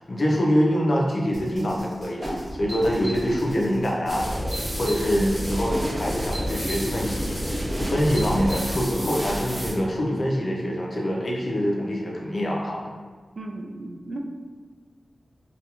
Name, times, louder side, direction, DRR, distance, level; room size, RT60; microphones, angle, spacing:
voice 1, 0.0-4.3 4.8-12.9, equal, 55° left, -2 dB, 0.4 m, -25 dB
sound 1, 1.3-8.6, equal, 80° right, 0.8 m, -39 dB
sound 2, 2.2-3.8 5.6-9.2, equal, 45° right, 0.8 m, -35 dB
sound 3, 4.1-9.7, equal, 5° right, 0.7 m, -30 dB
voice 2, 13.4-14.2, right 2 dB, 60° right, 2 dB, 0.3 m, -35 dB
2.8 x 2.3 x 2.3 m, 1.5 s
wide cardioid pair, 100°, 0 cm